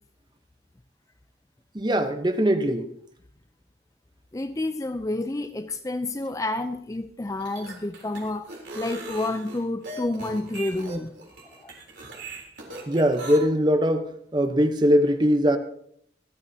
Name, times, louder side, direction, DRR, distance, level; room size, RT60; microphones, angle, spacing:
voice 1, 1.7-2.9 12.9-15.6, equal, 25° right, 0.9 m, -21 dB
voice 2, 4.3-8.5 8.7-11.1 11.6-11.7, left 2 dB, 20° left, 0.4 m, -29 dB
sound 1, 7.3-13.4, right 2 dB, 85° right, 3.5 m, -39 dB
26.0 x 9.1 x 2.8 m
head